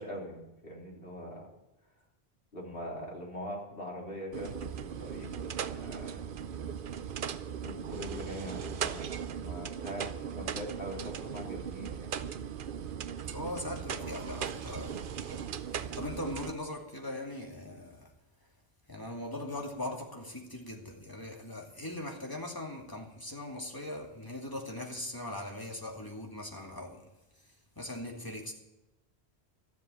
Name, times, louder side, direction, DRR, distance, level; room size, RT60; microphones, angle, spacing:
voice 1, 0.0-1.5 2.5-4.7 5.0-6.2 7.6-9.1 9.4-12.1, equal, 65° left, -3 dB, 3.8 m, -42 dB
sound 1, 4.3-16.5, right 8 dB, 60° right, 0.8 m, -38 dB
voice 2, 13.3-18.1 18.9-27.1 27.8-28.5, left 1 dB, 20° left, 0 dB, 2.4 m, -40 dB
14.0 x 7.5 x 9.0 m, 0.95 s
omnidirectional pair, 1.1 m